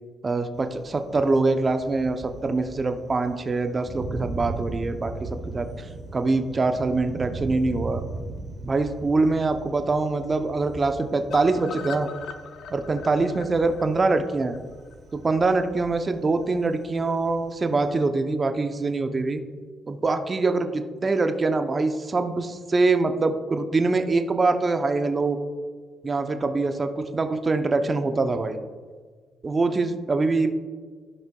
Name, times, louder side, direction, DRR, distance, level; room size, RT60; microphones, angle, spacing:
voice 1, 0.2-5.3 5.5-8.0 8.6-12.1 12.7-14.5 15.1-19.4 19.9-25.4 26.0-28.6 29.4-30.5, right 3 dB, 30° right, 7 dB, 0.6 m, -24 dB
Thunder, 0.5-18.1, right 3 dB, 50° right, 1.0 m, -39 dB
sound 1, 11.3-15.3 15.7-15.8 16.0-16.1 16.4-16.5, left 7 dB, 70° left, 0.6 m, -41 dB
14.0 x 5.6 x 2.3 m, 1.5 s
cardioid pair, 90°, 0 cm